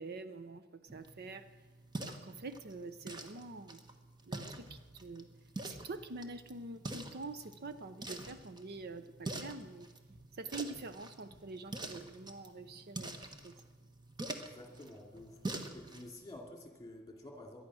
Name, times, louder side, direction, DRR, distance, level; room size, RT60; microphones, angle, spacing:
voice 1, 0.0-1.4 2.1-3.8 4.3-5.3 5.7-9.9 10.4-13.6, right 3 dB, 50° right, 11 dB, 0.6 m, -46 dB
sound 1, 0.9-16.1, right 2 dB, 20° right, 1.1 m, -46 dB
voice 2, 14.3-15.4 15.7-17.7, left 1 dB, 20° left, 2 dB, 2.5 m, -50 dB
18.5 x 12.0 x 6.3 m, 1.3 s
head